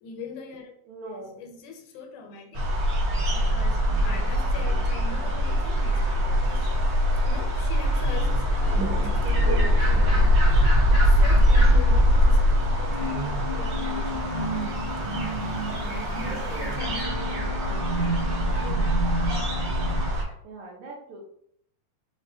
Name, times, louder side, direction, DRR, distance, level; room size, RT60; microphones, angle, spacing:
voice 1, 0.0-0.7 1.2-2.7 3.3-6.7 7.2-10.4 10.9-14.8 15.7-19.0, left 4 dB, 80° left, 3 dB, 2.1 m, -42 dB
voice 2, 0.9-1.4 4.0-4.3 8.8-9.0 16.2-16.7 19.8-19.9 20.4-21.2, right 2 dB, 80° right, 0 dB, 2.0 m, -41 dB
sound 1, 2.5-20.2, equal, 65° right, 1.1 m, -23 dB
sound 2, 3.8-20.1, right 1 dB, 60° left, 1.3 m, -36 dB
5.3 x 2.2 x 2.6 m, 0.68 s
omnidirectional pair, 3.6 m